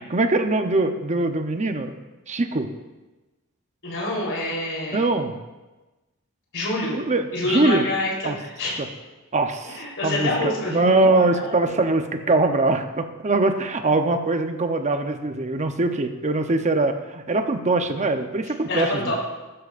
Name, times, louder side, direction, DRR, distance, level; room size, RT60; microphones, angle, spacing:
voice 1, 0.0-1.9 2.3-2.7 4.9-5.3 7.0-7.9 8.2-8.4 8.8-8.9 9.3-19.1, right 2 dB, 30° right, 7 dB, 0.8 m, -22 dB
voice 2, 3.8-5.1 6.5-7.0 7.3-8.7 9.6-11.9 12.2-12.4 18.7-19.1, left 2 dB, 60° left, -4 dB, 3.8 m, -27 dB
14.5 x 12.5 x 2.5 m, 1.1 s
head